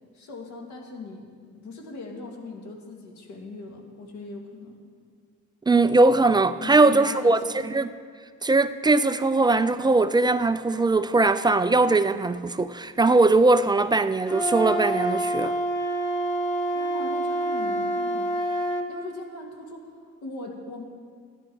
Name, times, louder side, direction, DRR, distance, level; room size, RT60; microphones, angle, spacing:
voice 1, 0.1-4.8 6.6-7.6 16.7-18.4 18.7-20.8, left 2 dB, 65° left, 2.1 m, -39 dB
voice 2, 5.7-7.9 8.4-15.6, right 3 dB, 15° right, 0.3 m, -20 dB
Wind instrument woodwind instrument, 14.3-18.9, right 1 dB, 5° left, 1.4 m, -27 dB
13.5 x 11.0 x 4.6 m
cardioid pair, 100°, 31 cm